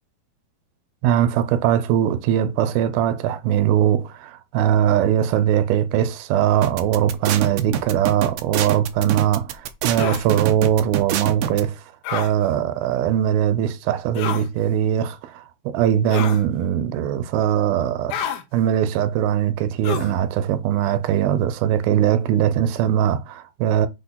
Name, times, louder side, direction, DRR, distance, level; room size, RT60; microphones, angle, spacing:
voice 1, 1.0-11.8 12.1-18.2 18.5-23.9, right 10 dB, 90° right, 2.6 m, -21 dB
sound 1, 6.6-11.6, right 10 dB, 75° right, 1.8 m, -25 dB
sound 2, 10.0-10.3 12.0-12.3 14.1-14.5 16.1-16.4 18.1-18.4 19.8-20.2, left 9 dB, 85° left, 2.8 m, -28 dB
8.3 x 3.6 x 5.6 m
omnidirectional pair, 4.3 m